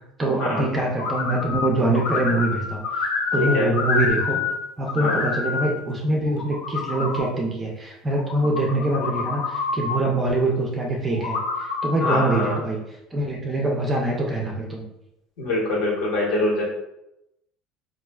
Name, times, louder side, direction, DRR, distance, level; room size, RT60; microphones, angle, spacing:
voice 1, 0.2-4.4 4.8-12.8 13.1-14.8, right 2 dB, 15° right, -1 dB, 0.4 m, -24 dB
sound 1, 1.0-1.7 1.9-4.6 4.8-5.7 6.3-7.2 8.2-10.0 11.1-12.3, left 4 dB, 85° left, 0.5 m, -27 dB
voice 2, 3.4-3.7 5.0-5.2 12.0-12.6 15.4-16.6, left 2 dB, 60° left, -2 dB, 1.0 m, -24 dB
4.3 x 2.4 x 2.2 m, 0.86 s
cardioid pair, 175°, 0 cm